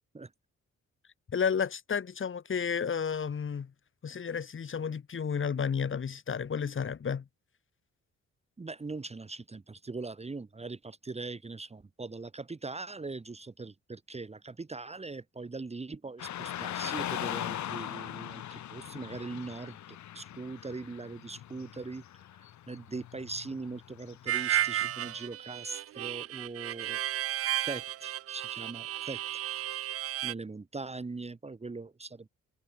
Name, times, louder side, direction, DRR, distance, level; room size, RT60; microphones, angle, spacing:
voice 1, 1.3-3.7 4.0-7.2, left 6 dB, 40° left, 2.9 m, -32 dB
voice 2, 8.6-22.2 22.7-27.0 27.6-29.2 30.2-32.3, right 3 dB, 20° right, 1.7 m, -41 dB
Car passing by / Traffic noise roadway noise, 16.2-25.2, left 12 dB, 70° left, 2.2 m, -40 dB
Harmonica, 24.3-30.3, right 13 dB, 50° right, 0.5 m, -33 dB
cardioid pair, 90°, 30 cm